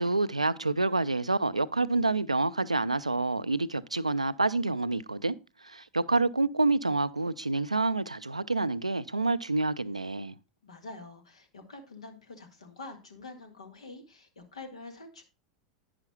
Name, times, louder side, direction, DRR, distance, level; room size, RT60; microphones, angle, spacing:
voice 1, 0.0-5.4 5.6-10.3, right 3 dB, 85° right, 0.4 m, -28 dB
voice 2, 10.6-15.2, left 3 dB, 70° left, 1.7 m, -46 dB
11.0 x 9.6 x 2.2 m
figure-of-eight pair, 85°, 3 cm